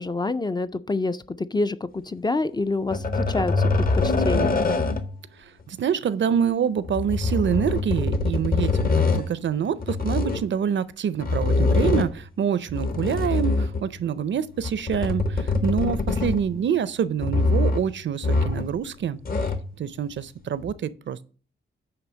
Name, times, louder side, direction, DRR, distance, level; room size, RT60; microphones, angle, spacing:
voice 1, 0.0-4.6, left 3 dB, 20° left, 0.3 m, -27 dB
sound 1, 2.9-5.2 6.8-9.3 9.8-10.5 11.2-12.2 12.7-14.0 14.6-16.6 17.2-17.9 18.2-18.8 19.0-19.7 20.6-20.7, left 3 dB, 45° left, 0.9 m, -24 dB
voice 2, 5.4-19.2 19.8-21.2, right 8 dB, 65° right, 0.5 m, -26 dB
8.9 x 3.4 x 6.1 m
wide cardioid pair, 130°, 20 cm